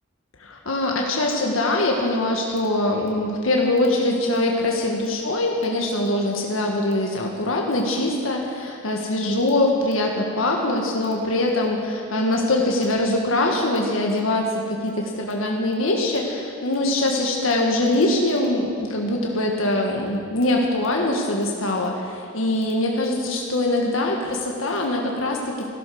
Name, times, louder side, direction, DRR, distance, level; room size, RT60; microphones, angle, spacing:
voice 1, 0.4-25.5, left 1 dB, 80° left, 0 dB, 1.6 m, -23 dB
14.5 x 12.0 x 6.3 m, 2.2 s
head